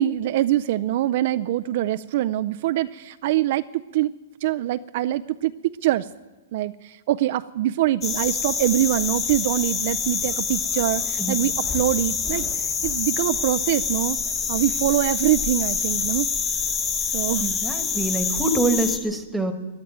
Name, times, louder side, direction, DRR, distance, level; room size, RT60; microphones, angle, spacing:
voice 1, 0.0-4.1 4.4-5.5 5.8-6.1 6.5-14.2 14.5-16.3 17.1-17.5, right 14 dB, 55° right, 11 dB, 0.4 m, -24 dB
sound 1, 8.0-19.0, left 5 dB, 25° left, 1.6 m, -26 dB
voice 2, 17.4-19.5, right 2 dB, 5° right, 7 dB, 1.4 m, -25 dB
14.0 x 10.5 x 9.2 m, 1.2 s
hypercardioid pair, 140°, 0 cm